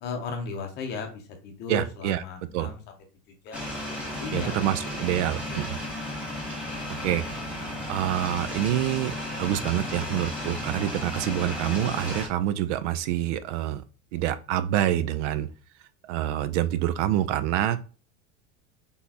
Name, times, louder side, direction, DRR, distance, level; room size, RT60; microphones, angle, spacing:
voice 1, 0.0-2.8 3.4-4.6 5.2-5.7, left 3 dB, 30° left, 4 dB, 0.7 m, -36 dB
voice 2, 1.7-2.2 2.5-2.7 4.3-5.8 7.0-7.2 7.9-13.8 14.1-15.5 16.1-17.8, right 12 dB, 75° right, 14 dB, 0.5 m, -26 dB
sound 1, 3.5-12.3, left 1 dB, 5° right, 0.8 m, -34 dB
4.1 x 3.5 x 2.8 m, 0.35 s
supercardioid pair, 175°, 36 cm